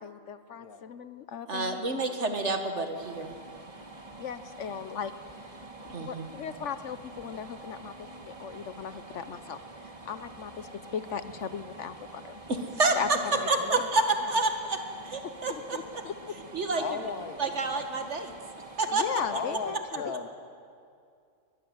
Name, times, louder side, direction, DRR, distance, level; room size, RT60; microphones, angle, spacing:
voice 1, 0.0-1.8 4.2-5.1 5.8-9.6 10.1-12.4 13.0-13.1 13.4-13.5 15.2-16.1 18.9-20.1, left 7 dB, 60° left, 12 dB, 1.0 m, -37 dB
voice 2, 1.5-3.3 5.9-6.3 12.5-14.8 15.0-15.8 16.5-16.8 17.4-18.3 18.8-19.0, right 3 dB, 50° right, 5 dB, 2.1 m, -28 dB
sound 1, 2.9-19.7, right 2 dB, 25° right, 1.7 m, -47 dB
voice 3, 13.0-13.9 16.8-17.4 19.3-20.3, left 5 dB, 80° left, 7 dB, 1.9 m, -37 dB
22.5 x 19.5 x 7.9 m, 2.4 s
omnidirectional pair, 1.6 m